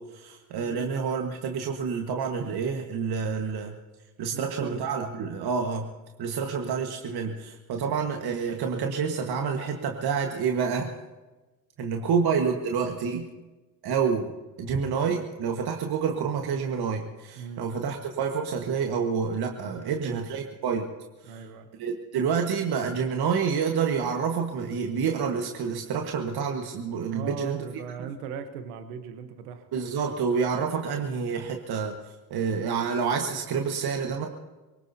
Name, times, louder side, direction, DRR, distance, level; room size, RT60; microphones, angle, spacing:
voice 1, 0.0-3.8 4.2-5.9 6.2-10.9 11.8-13.3 13.8-14.3 14.6-20.9 21.2-21.4 21.8-27.6 27.9-28.1 29.7-32.0 32.3-34.3, right 6 dB, 55° right, 3 dB, 1.6 m, -28 dB
voice 2, 0.5-0.9 4.3-4.8 11.9-12.1 17.4-17.6 19.7-20.4 21.3-21.7 27.1-29.7, right 7 dB, 85° right, 8 dB, 1.1 m, -39 dB
24.0 x 18.0 x 2.8 m, 1.2 s
hypercardioid pair, 55°, 44 cm